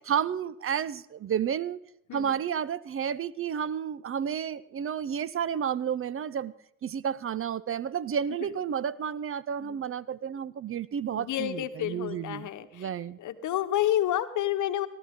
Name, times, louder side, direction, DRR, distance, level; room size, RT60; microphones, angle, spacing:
voice 1, 0.0-1.8 2.1-6.5 6.8-13.2, right 8 dB, 45° right, 20 dB, 0.6 m, -31 dB
voice 2, 11.2-12.9 13.2-14.9, left 12 dB, 65° left, 10 dB, 1.1 m, -29 dB
18.0 x 13.0 x 3.6 m, 0.76 s
supercardioid pair, 70°, 32 cm